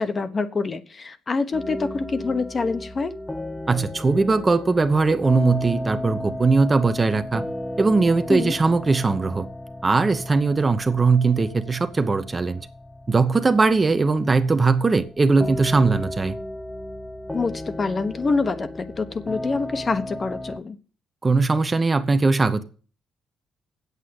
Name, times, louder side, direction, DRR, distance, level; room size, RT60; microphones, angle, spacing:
voice 1, 0.0-3.1 8.3-8.5 17.3-20.8, left 4 dB, 35° left, 1.1 m, -26 dB
sound 1, 1.5-20.6, left 1 dB, 10° left, 0.8 m, -35 dB
voice 2, 3.7-7.5 7.8-9.5 9.8-12.7 13.1-16.4 21.2-22.6, right 4 dB, 25° right, 0.9 m, -20 dB
8.3 x 8.2 x 7.7 m
cardioid pair, 90°, 0 cm